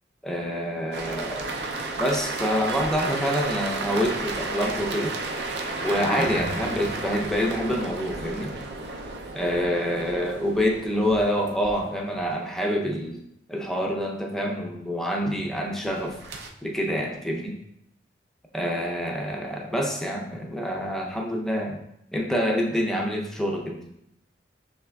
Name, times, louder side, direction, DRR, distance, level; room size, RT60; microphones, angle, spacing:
voice 1, 0.2-1.5 2.0-5.1 5.8-8.5 9.3-13.2 13.5-16.2 16.6-17.5 18.5-21.8 22.1-23.8, equal, 5° left, 0 dB, 0.5 m, -27 dB
sound 1, 0.9-12.5 16.0-16.5, right 3 dB, 65° right, 0.4 m, -33 dB
sound 2, 5.5-7.1, right 1 dB, 40° right, 0.8 m, -32 dB
5.9 x 3.4 x 2.2 m, 0.79 s
head